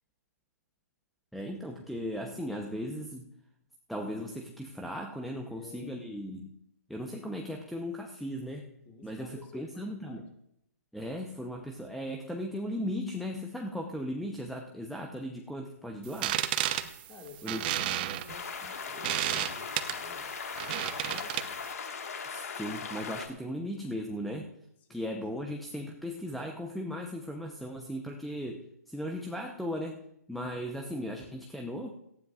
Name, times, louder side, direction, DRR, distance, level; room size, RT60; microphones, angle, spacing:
voice 1, 1.3-3.3 3.9-6.5 6.9-8.7 9.0-10.3 10.9-16.4 17.4-17.6 22.2-24.5 24.9-30.0 30.3-31.9, equal, ahead, 0 dB, 0.8 m, -37 dB
voice 2, 5.4-6.0 8.9-10.3 17.1-20.3 20.7-21.6 24.9-25.4, left 4 dB, 20° left, 2 dB, 2.2 m, -51 dB
sound 1, 16.1-21.7, right 13 dB, 35° right, 0.9 m, -32 dB
sound 2, 18.3-23.3, left 6 dB, 60° left, 1.7 m, -39 dB
18.0 x 15.0 x 2.5 m, 0.77 s
figure-of-eight pair, 140°, 9 cm